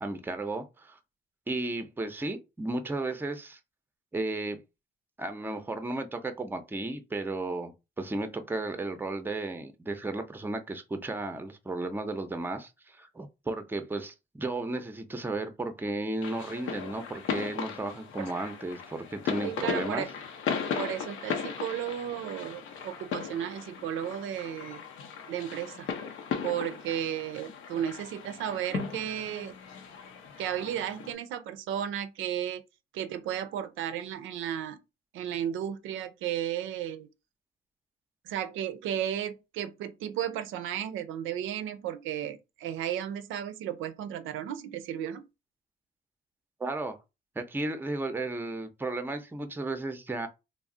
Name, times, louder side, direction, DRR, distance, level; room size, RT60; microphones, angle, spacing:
voice 1, 0.0-1.0 1.5-3.6 4.1-4.6 5.2-20.1 46.6-47.0 47.4-50.3, right 2 dB, 10° right, 0.5 m, -34 dB
sound 1, 16.2-31.1, left 6 dB, 85° left, 0.6 m, -37 dB
voice 2, 19.4-20.1 20.8-24.8 25.3-25.9 26.4-29.5 30.4-32.6 32.9-34.8 35.1-37.1 38.2-45.2, right 10 dB, 80° right, 0.4 m, -34 dB
2.4 x 2.0 x 3.6 m
cardioid pair, 90°, 20 cm